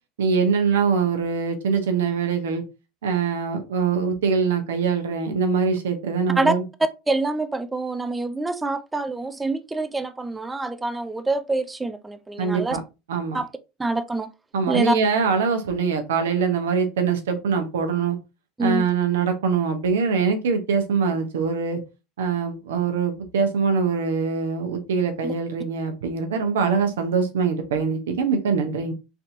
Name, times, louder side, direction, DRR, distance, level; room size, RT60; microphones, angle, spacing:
voice 1, 0.2-2.6 3.0-6.6 12.4-12.8 13.1-13.4 14.5-18.2 18.6-21.8 22.2-28.9, right 5 dB, 85° right, 0.7 m, -23 dB
voice 2, 7.1-12.8 13.3-13.5 13.8-14.3 14.7-15.0 18.6-18.9 25.2-25.3, right 2 dB, 15° right, 0.4 m, -25 dB
3.4 x 2.7 x 2.5 m
hypercardioid pair, 90°, 0 cm